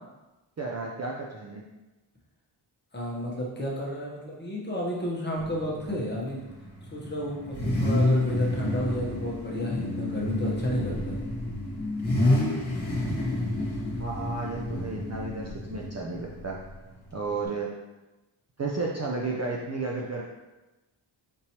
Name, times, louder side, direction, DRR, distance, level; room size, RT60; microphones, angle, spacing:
voice 1, 0.6-1.6 14.0-16.6 17.1-17.7 18.6-20.2, right 3 dB, 35° right, -2 dB, 0.4 m, -32 dB
voice 2, 2.9-6.5 6.9-11.2, equal, 20° left, -3 dB, 0.9 m, -32 dB
Car / Idling / Accelerating revving vroom, 5.4-17.5, left 1 dB, 50° left, 1.2 m, -29 dB
5.2 x 3.0 x 2.8 m, 1.1 s
wide cardioid pair, 125°, 50 cm